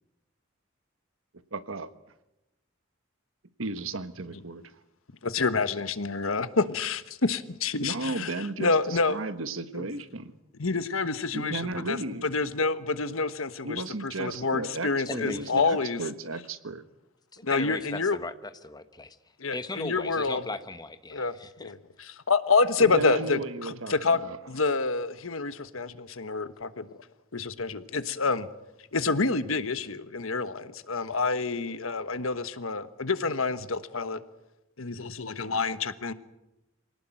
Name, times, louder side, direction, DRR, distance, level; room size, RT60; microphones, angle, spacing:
voice 1, 1.5-1.9 3.6-4.6 7.8-10.3 11.3-12.2 13.6-16.8 22.8-24.4, right 2 dB, 75° right, 11 dB, 1.4 m, -34 dB
voice 2, 5.2-9.2 9.8-9.9 10.6-16.0 17.4-18.2 19.4-20.4 21.1-21.3 21.6-24.2 24.5-26.9 27.3-28.5 28.9-34.2 34.8-36.1, left 4 dB, 80° left, 12 dB, 1.3 m, -28 dB
voice 3, 15.1-15.7 17.3-19.2 19.5-21.7, left 2 dB, 20° left, 11 dB, 1.1 m, -37 dB
25.0 x 18.5 x 9.0 m, 0.94 s
head